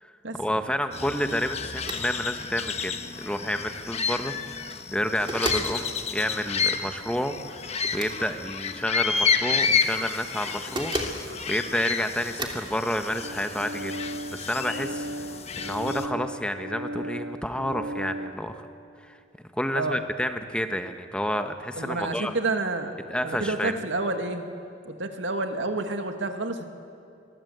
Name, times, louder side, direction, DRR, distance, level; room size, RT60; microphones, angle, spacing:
voice 1, 0.4-7.4 7.7-10.9 11.2-13.9 14.3-15.3 15.6-18.7 19.0-19.2 19.5-22.3 23.1-23.8, equal, 5° left, 7 dB, 1.1 m, -30 dB
sound 1, 0.9-16.1, left 6 dB, 35° left, 1.2 m, -30 dB
sound 2, 1.8-2.1 2.4-2.5 4.5-4.8 5.3-5.7 7.8-8.2 10.5-11.2 12.4-12.7, right 2 dB, 25° right, 2.8 m, -32 dB
sound 3, 13.2-18.3, equal, 65° right, 2.5 m, -36 dB
voice 2, 21.8-23.0 23.2-24.4 24.9-26.6, right 2 dB, 85° right, 5 dB, 2.2 m, -29 dB
26.0 x 22.0 x 8.1 m, 2.5 s
head